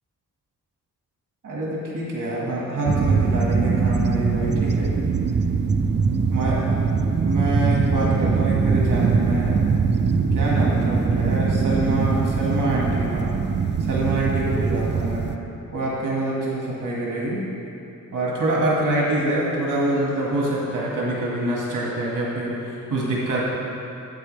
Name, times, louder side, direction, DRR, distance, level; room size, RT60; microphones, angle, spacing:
voice 1, 1.4-4.9 6.3-6.9 7.2-9.6 10.3-13.3 13.9-15.3 15.7-17.4 18.1-23.4, right 1 dB, 70° right, -5 dB, 1.9 m, -25 dB
sound 1, 2.9-15.4, right 5 dB, 35° right, 0.4 m, -22 dB
9.6 x 8.0 x 3.3 m, 2.9 s
cardioid pair, 80°, 33 cm